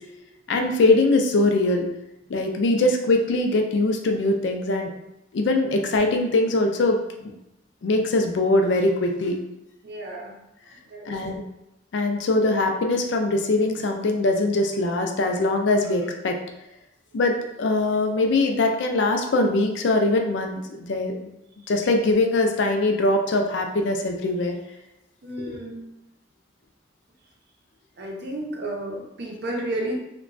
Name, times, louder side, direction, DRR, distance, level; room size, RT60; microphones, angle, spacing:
voice 1, 0.5-1.9 2.3-4.9 5.3-7.3 7.8-9.3 11.1-11.4 11.9-16.4 17.1-21.3 21.7-24.6 25.4-25.6, left 2 dB, 75° left, 3 dB, 0.4 m, -22 dB
voice 2, 9.8-10.4 10.9-11.2 25.2-25.8 28.0-30.0, right 1 dB, 60° right, 0 dB, 0.6 m, -32 dB
2.9 x 2.2 x 2.5 m, 0.88 s
head